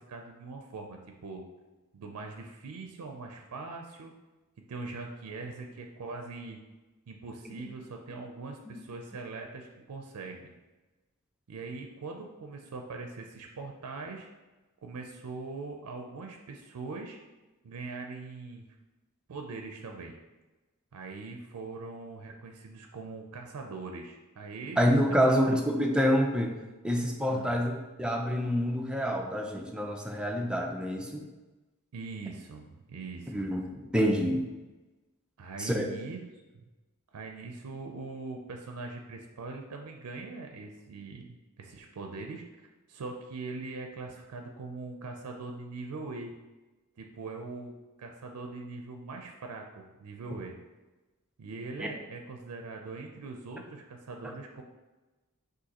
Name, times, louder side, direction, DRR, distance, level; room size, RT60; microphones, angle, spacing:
voice 1, 0.0-1.4 1.9-4.1 4.7-6.6 7.1-10.5 11.5-14.3 14.8-17.2 17.6-18.7 19.3-20.2 20.9-24.8 25.3-25.6 27.3-27.5 29.2-29.3 31.9-33.5 35.4-36.2 37.1-42.4 42.9-46.3 47.0-47.7 48.0-50.6 51.4-54.6, right 3 dB, 85° right, 3 dB, 0.4 m, -41 dB
voice 2, 24.8-26.6 26.8-31.3 33.3-34.4 35.6-35.9, equal, 5° right, 1 dB, 0.4 m, -27 dB
6.3 x 2.6 x 2.9 m, 1.1 s
head